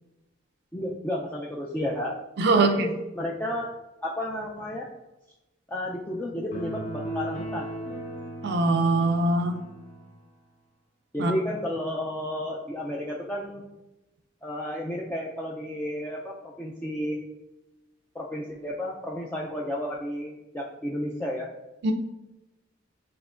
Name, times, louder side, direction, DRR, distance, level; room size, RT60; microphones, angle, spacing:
voice 1, 0.7-2.2 2.6-3.7 4.0-4.9 5.7-7.7 11.1-13.6 14.4-17.2 18.1-21.5, left 1 dB, 10° left, -4 dB, 0.4 m, -32 dB
voice 2, 2.4-2.9 8.4-9.6 11.2-11.3 21.8-21.9, right 2 dB, 60° right, 5 dB, 0.4 m, -22 dB
sound 1, 6.5-10.1, right 1 dB, 40° left, 1.0 m, -36 dB
7.1 x 2.9 x 2.4 m, 1.0 s
head